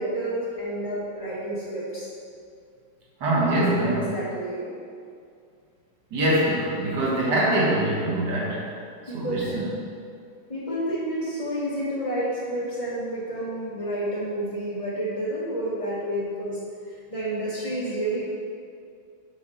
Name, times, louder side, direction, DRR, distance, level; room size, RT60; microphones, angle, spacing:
voice 1, 0.0-2.1 3.5-4.7 9.1-9.6 10.5-16.6 17.1-18.2, right 1 dB, 30° left, -8 dB, 0.6 m, -29 dB
voice 2, 3.2-4.1 6.1-8.7 9.0-9.7, right 1 dB, 60° right, -5 dB, 2.0 m, -24 dB
5.9 x 4.9 x 5.4 m, 2.3 s
omnidirectional pair, 2.2 m